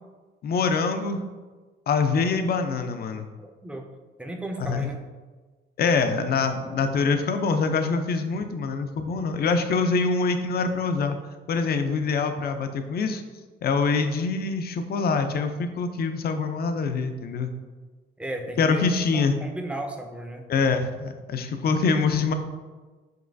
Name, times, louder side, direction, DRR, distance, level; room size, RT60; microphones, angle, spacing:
voice 1, 0.4-1.2 1.9-3.3 4.6-4.9 5.8-11.2 11.5-13.2 13.6-17.5 18.6-19.3 20.5-22.3, left 4 dB, 50° left, 7 dB, 0.5 m, -24 dB
voice 2, 3.4-3.9 4.2-5.0 18.2-20.4, right 1 dB, 5° right, 3 dB, 0.5 m, -34 dB
5.2 x 3.1 x 2.6 m, 1.3 s
cardioid pair, 90°, 20 cm